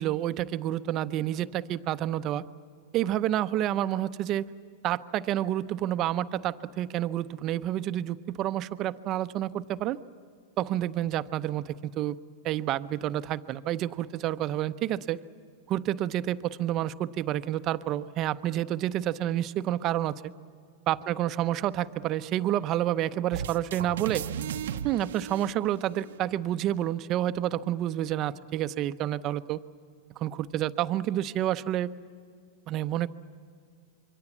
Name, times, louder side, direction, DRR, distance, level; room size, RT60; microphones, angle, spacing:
voice 1, 0.0-2.5 2.9-4.5 4.8-10.0 10.6-12.2 12.4-15.2 15.7-20.3 20.9-24.2 24.8-29.6 30.2-31.9 32.7-33.1, right 12 dB, 35° right, 12 dB, 0.7 m, -29 dB
sound 1, 23.3-26.2, right 8 dB, 80° right, 0.8 m, -35 dB
27.0 x 24.0 x 7.3 m, 2.1 s
supercardioid pair, 135°, 0 cm